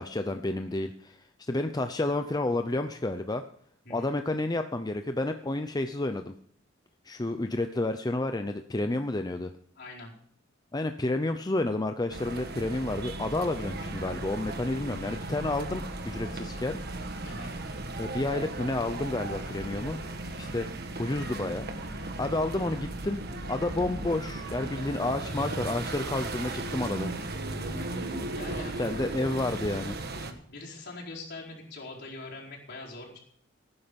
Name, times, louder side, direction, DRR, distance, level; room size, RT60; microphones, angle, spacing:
voice 1, 0.0-3.4 3.9-6.3 7.0-9.5 10.7-16.8 18.0-20.0 20.4-20.7 21.0-21.7 22.2-23.2 23.5-27.1 28.8-30.0, left 2 dB, 20° left, 7 dB, 0.6 m, -30 dB
voice 2, 9.7-10.1 17.2-17.6 20.4-20.8 28.3-29.0 30.5-33.2, left 2 dB, 55° left, -2 dB, 4.6 m, -43 dB
sound 1, 12.1-30.3, right 2 dB, 55° right, 1.5 m, -36 dB
18.0 x 9.8 x 5.3 m, 0.62 s
head